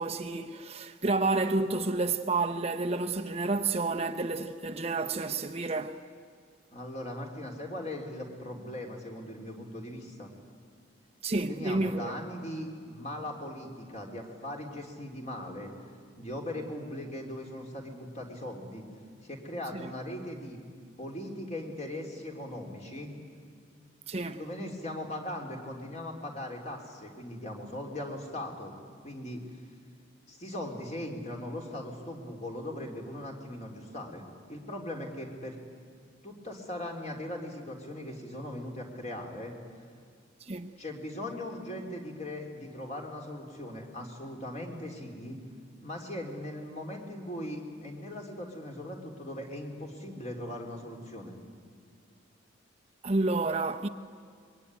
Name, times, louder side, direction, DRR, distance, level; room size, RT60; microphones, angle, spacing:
voice 1, 0.0-6.0 11.2-12.1 19.7-19.9 24.1-24.4 40.4-40.7 53.0-53.9, right 3 dB, 30° right, 0.7 m, -30 dB
voice 2, 6.7-10.3 11.5-15.7 16.2-18.9 19.2-20.6 21.0-23.1 24.4-28.7 29.0-29.4 30.3-35.6 36.2-39.5 40.8-45.4 45.8-51.3, left 1 dB, 35° left, 3.6 m, -39 dB
25.5 x 22.5 x 10.0 m
head